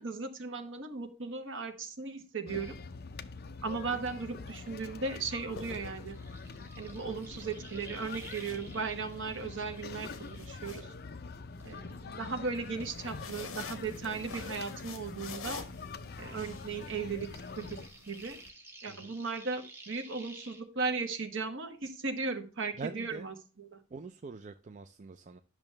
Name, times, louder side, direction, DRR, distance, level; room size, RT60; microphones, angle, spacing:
voice 1, 0.0-2.7 3.6-6.2 6.8-10.1 10.4-10.9 11.6-15.6 16.2-17.3 17.5-17.8 18.1-18.4 18.8-23.8, right 4 dB, 60° right, 1.3 m, -37 dB
sound 1, 2.5-17.9, left 4 dB, 45° left, 0.6 m, -45 dB
sound 2, 4.2-4.4 5.3-6.5 8.0-9.2 9.6-11.7 12.8-18.5, left 4 dB, 70° left, 1.1 m, -48 dB
sound 3, 5.8-11.2 11.6-14.9 15.2-20.6, right 2 dB, 10° right, 1.2 m, -54 dB
voice 2, 22.8-23.3 23.9-25.4, right 4 dB, 35° right, 0.4 m, -43 dB
10.5 x 6.1 x 3.3 m
head